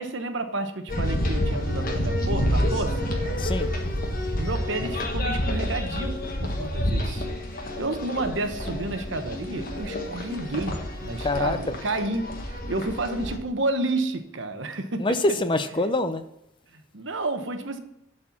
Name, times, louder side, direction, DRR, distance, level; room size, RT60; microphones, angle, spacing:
voice 1, 0.0-3.1 4.4-6.2 6.4-7.3 7.5-15.2 15.8-15.9 16.7-17.8, right 2 dB, 60° right, 7 dB, 1.0 m, -30 dB
sound 1, 0.9-13.4, equal, 45° left, 1.4 m, -28 dB
voice 2, 3.4-3.7 11.2-11.7 15.0-16.2, left 2 dB, 25° left, 11 dB, 0.4 m, -25 dB
11.5 x 4.4 x 7.1 m, 0.81 s
head